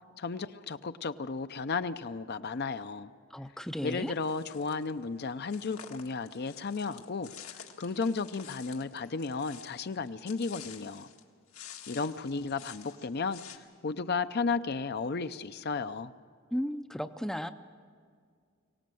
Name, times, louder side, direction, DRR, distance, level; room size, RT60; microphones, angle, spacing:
voice 1, 0.2-3.1 3.8-11.1 11.9-16.1, left 4 dB, 50° left, 11 dB, 0.6 m, -34 dB
voice 2, 3.3-4.1 16.5-17.5, equal, ahead, 9 dB, 0.5 m, -34 dB
sound 1, 4.2-4.9 5.5-11.2 11.5-13.6, left 9 dB, 80° left, 1.8 m, -50 dB
24.0 x 17.5 x 7.7 m, 2.1 s
head